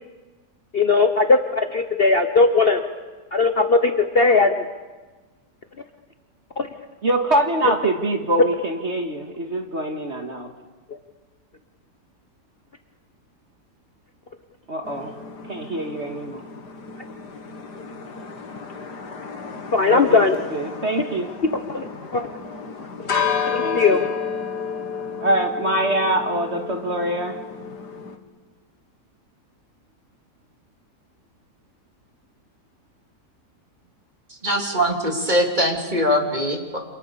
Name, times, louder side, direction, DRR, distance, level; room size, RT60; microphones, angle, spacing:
voice 1, 0.7-2.8 3.3-4.5 6.6-6.7 19.7-20.4 21.7-21.9 22.1-22.3 23.5-24.0, left 4 dB, 40° left, 6 dB, 1.2 m, -18 dB
voice 2, 7.0-10.5 14.7-15.1 15.5-16.4 19.9-21.3 23.6-24.1 25.2-27.3, right 1 dB, 40° right, 3 dB, 2.2 m, -24 dB
sound 1, 14.8-28.2, left 6 dB, 80° left, 2.4 m, -32 dB
voice 3, 34.4-36.8, equal, 25° right, 2 dB, 3.6 m, -22 dB
28.5 x 27.0 x 7.0 m, 1.3 s
omnidirectional pair, 1.7 m